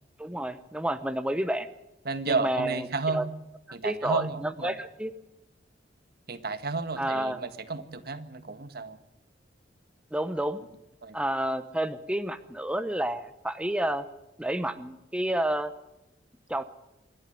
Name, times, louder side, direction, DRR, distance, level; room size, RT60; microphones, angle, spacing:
voice 1, 0.2-1.7 2.3-2.9 3.1-3.2 3.8-5.1 7.0-7.4 10.1-10.6 11.1-14.0 14.4-15.7 16.5-16.6, right 1 dB, 5° right, 10 dB, 0.8 m, -30 dB
voice 2, 2.0-3.2 3.7-4.8 6.3-9.0 11.0-11.2, right 4 dB, 60° right, 10 dB, 1.7 m, -32 dB
26.5 x 12.0 x 9.4 m, 0.91 s
head